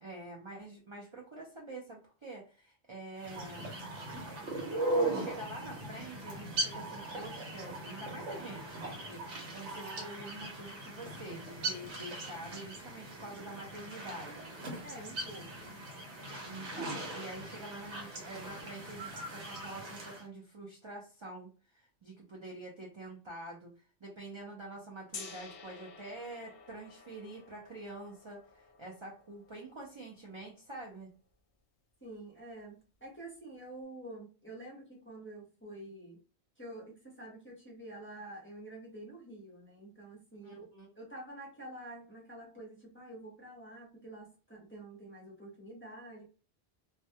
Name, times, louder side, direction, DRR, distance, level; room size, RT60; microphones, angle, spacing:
voice 1, 0.0-3.6 4.2-4.4 5.0-14.5 16.4-23.7 24.0-31.1 40.4-40.9, right 2 dB, 50° right, -2 dB, 0.3 m, -47 dB
sound 1, 3.2-20.2, right 2 dB, 85° right, 1.0 m, -39 dB
voice 2, 14.8-15.8 32.0-36.2 36.6-40.6 41.0-46.2, right 1 dB, 15° left, -4 dB, 0.5 m, -48 dB
Gong, 25.1-31.0, left 5 dB, 65° left, 0.7 m, -52 dB
2.2 x 2.1 x 2.7 m, 0.37 s
omnidirectional pair, 1.1 m